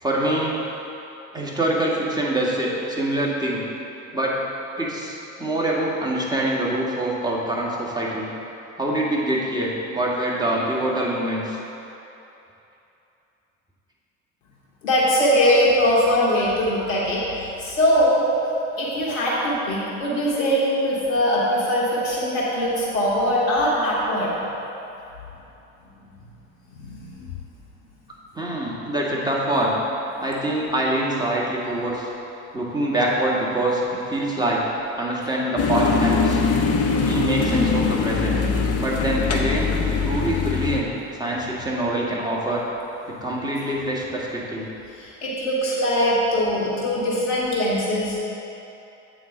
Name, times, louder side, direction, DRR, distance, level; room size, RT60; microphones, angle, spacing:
voice 1, 0.0-0.6 1.3-3.6 4.1-4.4 4.8-8.3 8.7-11.6 28.3-29.8 30.2-32.1 32.5-34.6 34.9-36.4 37.0-38.4 38.8-42.6 43.1-44.7, right 1 dB, 10° right, -5 dB, 1.7 m, -25 dB
voice 2, 14.8-18.3 18.7-24.3 26.7-27.3 45.0-48.2, equal, 80° left, -5 dB, 1.1 m, -21 dB
sound 1, 35.6-40.8, left 4 dB, 40° left, 0.8 m, -22 dB
7.9 x 3.9 x 5.2 m, 2.9 s
hypercardioid pair, 55°, 39 cm